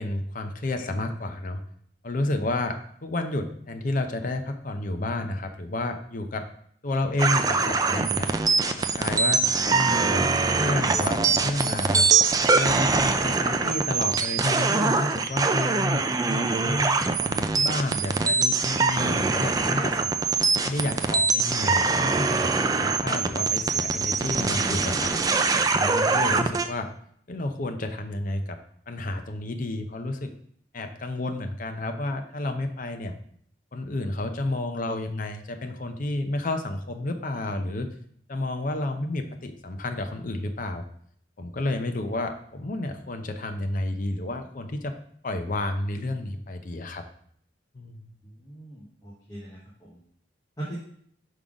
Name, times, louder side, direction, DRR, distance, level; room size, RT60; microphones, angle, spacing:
voice 1, 0.0-1.6 2.0-2.7 3.0-6.5 6.8-8.3 8.8-10.2 10.5-12.1 12.5-20.1 20.6-22.5 22.8-25.1 25.8-26.9 27.3-28.6 28.9-30.3 30.7-33.1 33.7-37.9 38.3-40.8 41.4-44.9 45.2-47.0 47.7-48.1, left 2 dB, 45° left, 6 dB, 0.6 m, -30 dB
sound 1, 7.2-26.7, right 4 dB, 20° right, 0.3 m, -23 dB
voice 2, 48.4-50.0 50.6-50.8, right 1 dB, 20° left, -6 dB, 1.2 m, -39 dB
5.5 x 3.7 x 5.0 m, 0.63 s
head